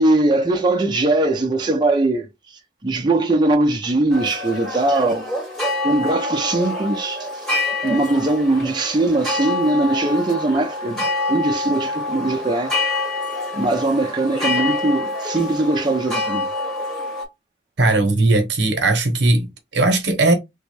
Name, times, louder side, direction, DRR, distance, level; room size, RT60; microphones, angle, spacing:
voice 1, 0.0-5.3 5.8-7.5 7.8-12.7 13.5-16.5, right 2 dB, 25° right, 0.6 m, -20 dB
sound 1, 4.1-17.3, left 2 dB, ahead, 1.2 m, -26 dB
voice 2, 17.8-20.3, right 2 dB, 80° right, 0.8 m, -18 dB
3.5 x 2.1 x 3.2 m
head